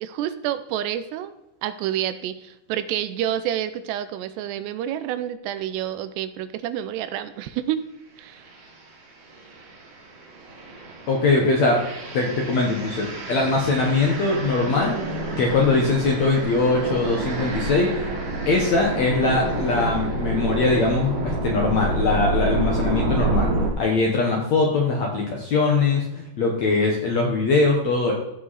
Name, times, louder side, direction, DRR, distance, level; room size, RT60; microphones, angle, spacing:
voice 1, 0.0-1.3 1.6-7.8 8.2-8.5, right 11 dB, 85° right, 12 dB, 2.8 m, -28 dB
sound 1, 8.4-8.7 9.3-23.7, right 2 dB, 50° right, 2.9 m, -28 dB
voice 2, 11.1-11.8 12.1-15.0 15.4-17.9 18.5-23.5 23.8-28.1, left 3 dB, 65° left, 0 dB, 1.8 m, -21 dB
15.0 x 5.9 x 4.1 m, 0.88 s
omnidirectional pair, 4.9 m